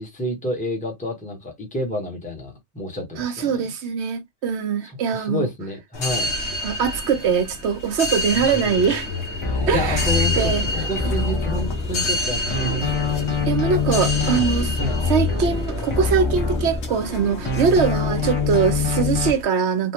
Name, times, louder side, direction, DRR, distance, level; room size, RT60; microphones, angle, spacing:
voice 1, 0.0-3.6 4.8-6.3 8.4-8.6 9.4-13.3 14.8-15.0, left 1 dB, 5° left, 1.0 m, -29 dB
voice 2, 3.2-5.5 6.6-9.1 9.7-10.1 10.3-10.6 13.4-14.7 15.1-19.9, right 6 dB, 70° right, 1.1 m, -22 dB
sound 1, 5.9-19.4, left 2 dB, 70° left, 1.6 m, -29 dB
sound 2, 9.4-12.2 12.5-17.2 17.5-19.3, left 4 dB, 30° left, 0.8 m, -24 dB
3.5 x 2.2 x 2.9 m
omnidirectional pair, 1.2 m